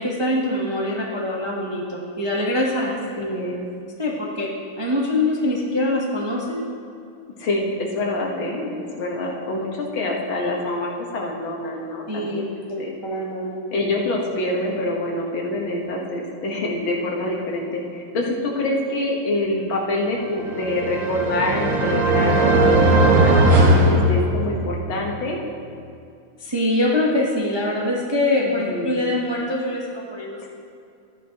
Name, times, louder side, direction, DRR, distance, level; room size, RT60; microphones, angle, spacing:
voice 1, 0.0-2.8 4.0-4.5 4.8-6.6 12.1-13.7 26.4-30.5, left 1 dB, 30° right, -3 dB, 0.4 m, -24 dB
voice 2, 2.8-3.6 7.4-12.5 12.8-12.9 13.7-23.4 23.8-25.4 28.4-29.0 30.4-30.5, left 1 dB, 75° left, -1 dB, 2.0 m, -26 dB
sound 1, 20.4-24.8, right 1 dB, 55° right, 1.1 m, -18 dB
13.0 x 9.9 x 2.9 m, 2.4 s
omnidirectional pair, 2.2 m